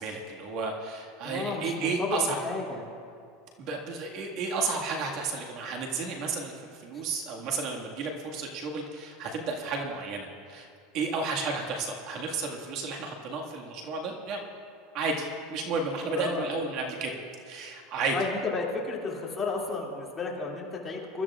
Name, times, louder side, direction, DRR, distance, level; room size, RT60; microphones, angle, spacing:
voice 1, 0.0-2.4 3.6-6.5 6.8-10.7 10.9-14.4 14.9-17.1 17.4-18.1, right 4 dB, 50° right, 0 dB, 1.8 m, -32 dB
voice 2, 1.2-2.8 6.9-7.0 16.1-16.5 18.1-21.2, left 4 dB, 15° left, -3 dB, 2.5 m, -32 dB
24.0 x 13.5 x 2.4 m, 2.3 s
supercardioid pair, 135°, 0 cm